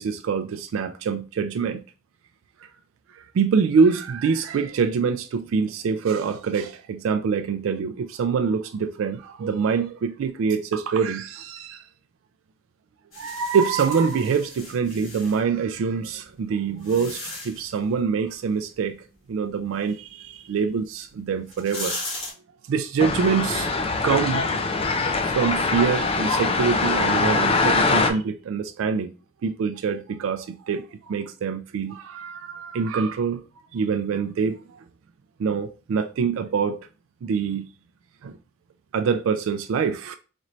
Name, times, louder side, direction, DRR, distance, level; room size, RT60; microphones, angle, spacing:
voice 1, 0.0-1.8 3.1-11.8 13.2-19.0 19.3-22.0 22.7-23.7 24.0-24.4 25.2-29.1 29.4-33.4 33.7-34.6 35.4-36.9 37.2-37.7 38.2-38.4 38.9-40.2, right 5 dB, 80° right, 0.3 m, -25 dB
sound 1, 13.1-15.4 16.2-17.8 20.8-20.9 21.4-22.3, left 2 dB, 80° left, 1.9 m, -36 dB
sound 2, 23.0-28.1, left 3 dB, 30° left, 0.4 m, -23 dB
4.2 x 3.1 x 2.5 m
head